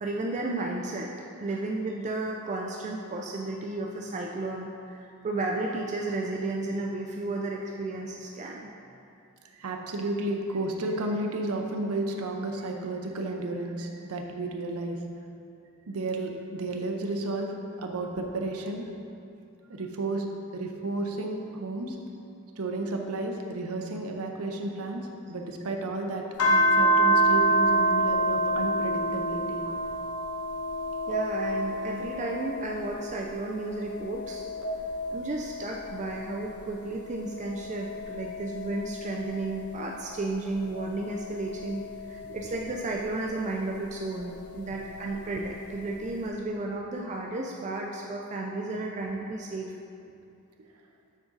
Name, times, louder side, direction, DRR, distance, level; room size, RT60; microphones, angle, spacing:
voice 1, 0.0-1.1 1.4-8.7 31.1-34.4 35.1-41.8 42.1-49.7, right 2 dB, 35° right, 0 dB, 0.4 m, -33 dB
voice 2, 9.6-15.0 15.9-18.8 19.7-20.3 20.5-22.0 22.6-25.0 25.3-29.6 42.2-42.4, right 2 dB, 70° right, 2 dB, 0.7 m, -32 dB
sound 1, 26.4-33.1 33.6-36.5 37.1-39.8 40.6-43.0 44.4-45.4, right 1 dB, 90° left, 1.0 m, -29 dB
8.8 x 3.8 x 3.9 m, 2.6 s
head